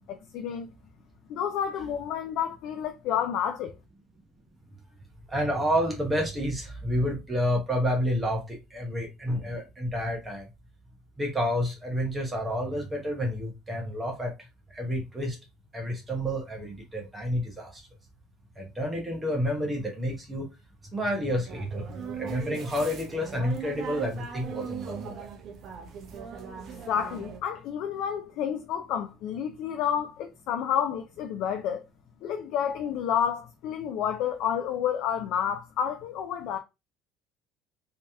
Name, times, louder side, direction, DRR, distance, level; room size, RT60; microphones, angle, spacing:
voice 1, 0.1-0.7 1.3-3.7 26.9-31.8 32.2-36.6, left 8 dB, 55° left, 0.4 m, -30 dB
voice 2, 5.3-10.5 11.2-14.3 14.7-15.4 15.7-17.8 18.6-20.5 20.9-25.3, equal, 10° right, 0.9 m, -29 dB
sound 1, 21.3-27.4, right 6 dB, 40° right, 0.7 m, -39 dB
3.2 x 2.8 x 3.3 m
cardioid pair, 175°, 0 cm